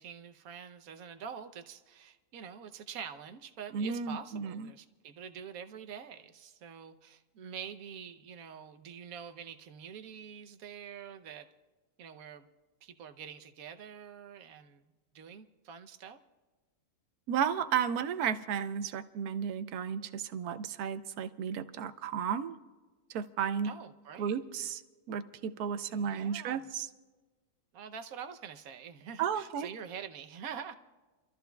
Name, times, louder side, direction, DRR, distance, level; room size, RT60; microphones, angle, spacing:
voice 1, 0.0-11.5 12.0-12.5 12.8-14.9 15.1-16.2 23.6-24.4 25.9-26.6 27.7-30.8, right 7 dB, 70° right, 9 dB, 1.2 m, -46 dB
voice 2, 3.7-4.7 17.3-22.5 23.1-23.7 24.2-24.8 25.1-26.9 29.2-29.7, right 7 dB, 90° right, 11 dB, 1.2 m, -33 dB
29.0 x 14.0 x 2.3 m, 1.3 s
omnidirectional pair, 1.6 m